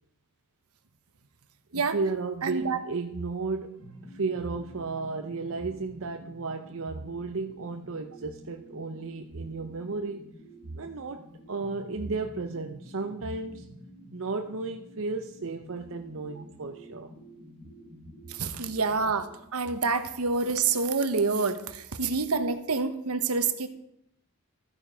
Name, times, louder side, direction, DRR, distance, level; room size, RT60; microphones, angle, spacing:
voice 1, 1.7-10.2 10.7-13.7 14.1-17.1, right 3 dB, 60° right, 5 dB, 0.7 m, -34 dB
voice 2, 2.4-2.8 18.3-23.7, right 4 dB, 80° right, 9 dB, 1.1 m, -27 dB
sound 1, 3.8-19.3, equal, 45° left, 4.7 m, -49 dB
13.0 x 9.1 x 5.1 m, 0.78 s
head